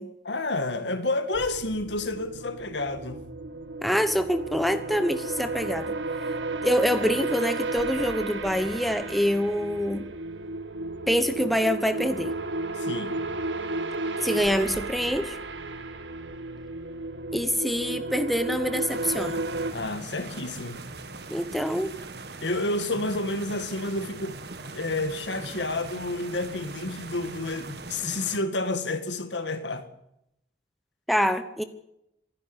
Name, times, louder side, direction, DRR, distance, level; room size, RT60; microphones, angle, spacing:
voice 1, 0.2-3.3 6.5-6.6 12.8-13.2 19.7-20.8 22.4-24.4 24.7-29.8, left 2 dB, 75° left, 2.1 m, -30 dB
sound 1, 1.3-19.7, right 2 dB, 85° right, 1.6 m, -33 dB
voice 2, 3.8-6.0 6.3-6.4 6.6-10.1 11.1-12.3 14.2-15.4 17.3-19.4 21.3-21.9 31.1-31.6, equal, ahead, 1.1 m, -26 dB
sound 2, 18.9-28.4, right 3 dB, 65° right, 1.6 m, -41 dB
26.0 x 11.0 x 9.9 m
head